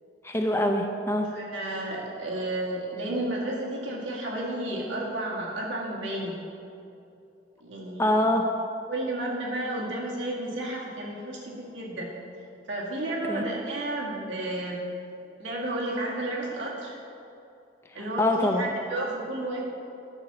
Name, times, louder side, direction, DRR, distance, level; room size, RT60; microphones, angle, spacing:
voice 1, 0.2-1.3 8.0-8.5 13.3-13.4 17.9-18.8, left 1 dB, 15° left, 3 dB, 0.5 m, -25 dB
voice 2, 1.3-6.4 7.6-8.1 8.9-12.1 12.7-14.8 15.4-17.0 17.9-19.6, right 1 dB, 85° right, -4 dB, 2.0 m, -32 dB
11.0 x 6.8 x 4.1 m, 2.6 s
head